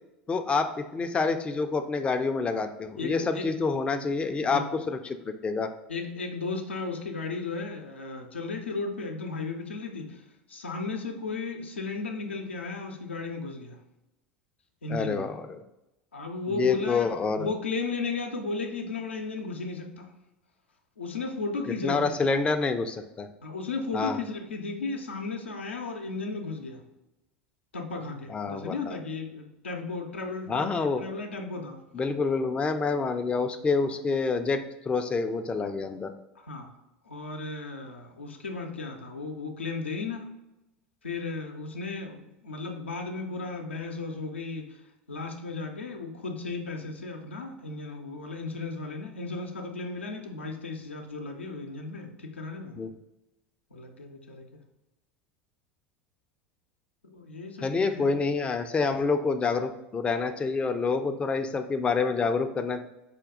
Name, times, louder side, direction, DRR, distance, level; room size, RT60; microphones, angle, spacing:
voice 1, 0.3-5.0 5.3-5.7 14.9-15.6 16.5-17.5 21.8-23.3 23.9-24.2 28.3-29.0 30.5-31.0 31.9-36.1 52.8-52.9 57.6-62.8, left 4 dB, 20° left, 6 dB, 0.4 m, -27 dB
voice 2, 3.0-3.5 4.4-4.8 5.9-10.2 10.5-13.8 14.8-15.3 16.1-20.1 21.0-22.3 23.4-26.8 27.7-31.8 36.4-36.7 37.0-40.3 41.0-44.8 45.1-52.8 53.7-54.5 57.0-58.2, left 3 dB, 85° left, 3 dB, 0.6 m, -35 dB
5.0 x 2.2 x 3.6 m, 0.94 s
figure-of-eight pair, 80°, 6 cm